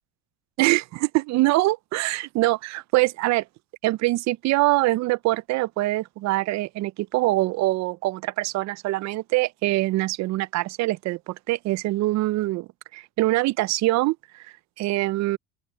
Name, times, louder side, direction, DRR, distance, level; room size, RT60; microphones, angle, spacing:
voice 1, 0.6-3.4 3.8-15.4, right 19 dB, 60° right, 0.5 m, -24 dB
open air
supercardioid pair, 105°, 32 cm